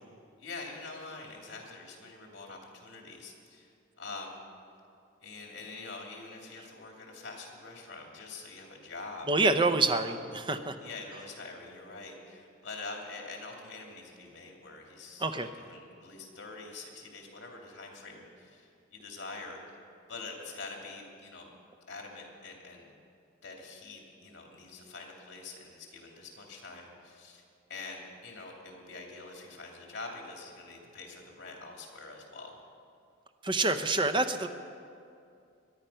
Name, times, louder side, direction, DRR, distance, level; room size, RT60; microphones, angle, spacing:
voice 1, 0.4-4.4 5.2-9.3 9.9-10.1 10.8-19.8 20.1-21.5 21.9-22.9 23.4-27.4 27.7-32.6, left 3 dB, 60° left, 0 dB, 2.7 m, -45 dB
voice 2, 9.3-10.8 15.2-15.5 33.4-34.5, right 3 dB, 25° right, 8 dB, 0.7 m, -27 dB
22.0 x 10.5 x 5.6 m, 2.5 s
head